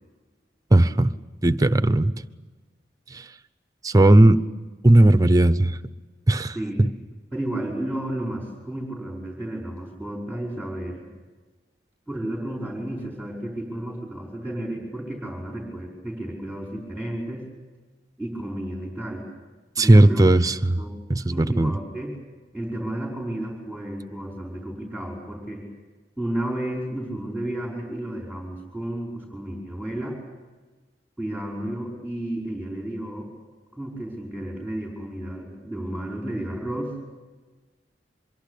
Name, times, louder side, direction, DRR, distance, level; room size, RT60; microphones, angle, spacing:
voice 1, 0.7-1.1 1.4-2.1 3.8-4.4 4.8-5.7 6.3-6.5 19.8-20.8 21.1-21.7, right 1 dB, 20° right, 12 dB, 0.8 m, -16 dB
voice 2, 6.5-6.8 7.3-11.1 12.1-17.5 18.2-19.3 19.8-20.4 20.8-21.0 21.3-22.2 22.5-25.6 26.2-30.2 31.2-33.3 33.7-37.0, right 1 dB, 5° left, -2 dB, 5.1 m, -32 dB
25.0 x 23.0 x 8.5 m, 1.3 s
head